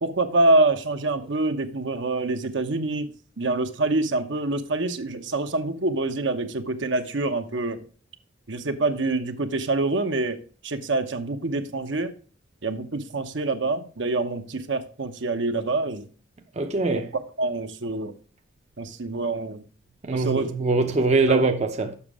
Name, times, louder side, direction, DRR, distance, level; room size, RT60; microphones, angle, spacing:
voice 1, 0.0-3.1 3.4-7.8 8.5-10.4 10.6-12.1 12.6-16.1 17.4-18.1 18.8-19.6 20.1-20.5 21.3-21.4, right 2 dB, 65° right, 0.9 m, -26 dB
voice 2, 16.6-17.1 20.0-21.9, right 3 dB, 35° right, 0.6 m, -22 dB
7.2 x 6.1 x 4.8 m
head